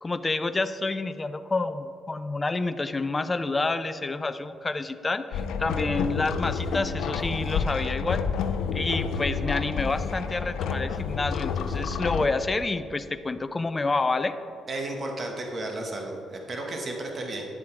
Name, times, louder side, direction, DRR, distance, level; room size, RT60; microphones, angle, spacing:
voice 1, 0.0-8.2 8.7-14.4, left 3 dB, 25° left, 11 dB, 0.5 m, -28 dB
sound 1, 5.3-12.3, left 6 dB, 85° left, 0.6 m, -29 dB
voice 2, 14.7-17.5, right 2 dB, 40° right, 1 dB, 1.4 m, -33 dB
10.5 x 7.2 x 4.6 m, 2.6 s
cardioid pair, 90°, 0 cm